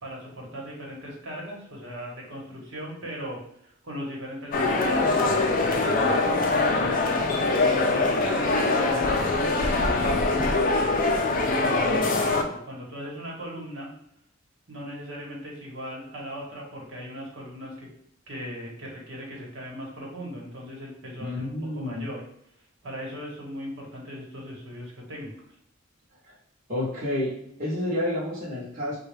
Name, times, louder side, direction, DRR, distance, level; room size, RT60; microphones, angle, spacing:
voice 1, 0.0-7.3 7.9-10.5 11.4-13.9 14.7-17.9 18.3-22.2 22.8-25.3, equal, 65° right, -3 dB, 1.1 m, -38 dB
sound 1, 4.5-12.4, left 3 dB, 40° left, 0.4 m, -23 dB
voice 2, 21.2-22.1 26.2-26.3 26.7-29.0, left 1 dB, 40° right, -7 dB, 0.9 m, -30 dB
3.7 x 2.2 x 3.3 m, 0.72 s
head